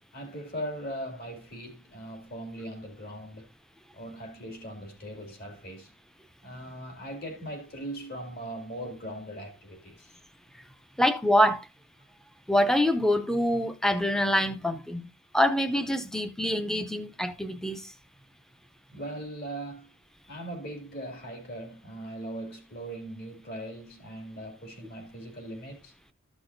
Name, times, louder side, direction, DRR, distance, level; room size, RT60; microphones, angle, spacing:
voice 1, 0.0-3.5 3.9-5.9 6.4-10.2 18.9-19.9 20.3-25.9, right 1 dB, 45° left, 2.3 m, -40 dB
voice 2, 11.0-11.7 12.5-15.0 15.3-17.9, equal, ahead, 0.6 m, -25 dB
13.5 x 6.2 x 2.6 m
head